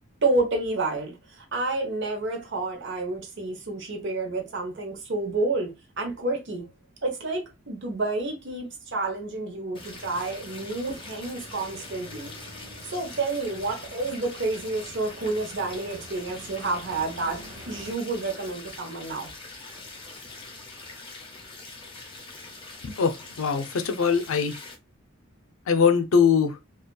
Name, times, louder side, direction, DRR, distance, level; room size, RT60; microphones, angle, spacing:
voice 1, 0.2-6.7 7.0-12.3 12.8-19.3, right 2 dB, 60° right, 0.8 m, -29 dB
sound 1, 9.7-24.7, left 3 dB, 25° left, 0.6 m, -43 dB
sound 2, 9.8-18.0, right 1 dB, 35° right, 1.0 m, -47 dB
voice 2, 22.8-24.5 25.7-26.6, left 6 dB, 75° left, 0.5 m, -22 dB
2.8 x 2.3 x 2.2 m
head